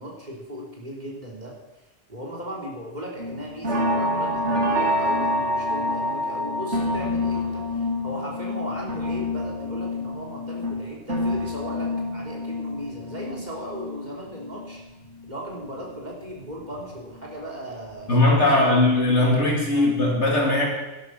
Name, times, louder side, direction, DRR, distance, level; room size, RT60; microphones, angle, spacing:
voice 1, 0.0-1.5 2.1-14.8 15.2-19.3 19.7-19.9, equal, 35° right, -2 dB, 3.5 m, -37 dB
sound 1, 3.2-15.3 15.7-17.3 17.7-18.0 18.3-18.4, left 1 dB, 70° right, 2.1 m, -27 dB
voice 2, 18.1-20.7, left 2 dB, 65° left, -2 dB, 3.3 m, -19 dB
12.0 x 12.0 x 6.4 m, 1.0 s
omnidirectional pair, 1.3 m